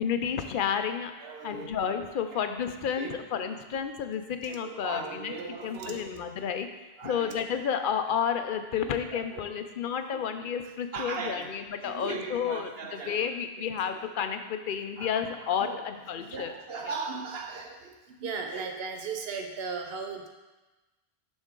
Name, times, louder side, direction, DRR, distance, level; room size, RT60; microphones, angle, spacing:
voice 1, 0.0-1.1 1.4-5.3 5.6-6.7 7.0-16.5, left 7 dB, 60° left, 8 dB, 0.6 m, -31 dB
voice 2, 1.2-1.7 2.3-2.4 3.0-3.1 4.4-6.2 7.0-7.3 8.7-8.9 9.1-9.4 10.1-10.3 10.9-11.5 11.8-14.0 15.0-20.3, right 4 dB, 75° right, 3 dB, 1.0 m, -38 dB
6.2 x 6.1 x 3.7 m, 1.1 s
omnidirectional pair, 1.0 m